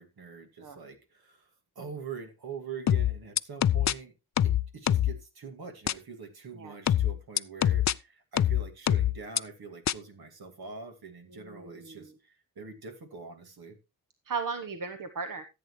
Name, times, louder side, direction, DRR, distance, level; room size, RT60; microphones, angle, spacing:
voice 1, 0.0-1.5 1.8-4.1 4.4-13.8, right 5 dB, 75° right, 2.3 m, -44 dB
sound 1, 2.9-3.9 4.4-5.2 5.9-6.0 6.9-7.9 8.4-9.4 9.9-10.0, left 11 dB, 50° left, 0.5 m, -24 dB
voice 2, 11.3-12.1 14.3-15.4, right 5 dB, 60° right, 1.2 m, -36 dB
14.0 x 8.0 x 3.2 m
cardioid pair, 70°, 38 cm